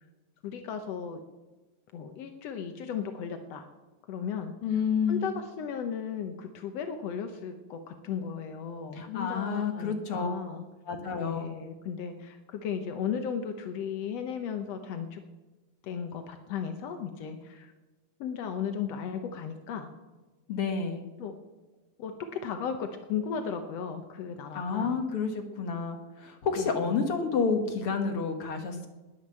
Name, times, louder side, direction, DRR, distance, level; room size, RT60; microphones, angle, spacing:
voice 1, 0.4-1.2 1.9-3.7 4.1-4.8 5.1-10.7 11.1-15.2 15.8-17.7 18.2-19.9 21.2-21.3 22.0-25.0 26.6-27.1, left 7 dB, 75° left, 6 dB, 1.5 m, -35 dB
voice 2, 4.6-5.3 8.9-10.6 10.9-11.5 20.5-21.0 24.5-25.3 25.6-28.9, left 5 dB, 60° left, 5 dB, 1.6 m, -29 dB
20.0 x 7.3 x 7.5 m, 1.2 s
omnidirectional pair, 4.1 m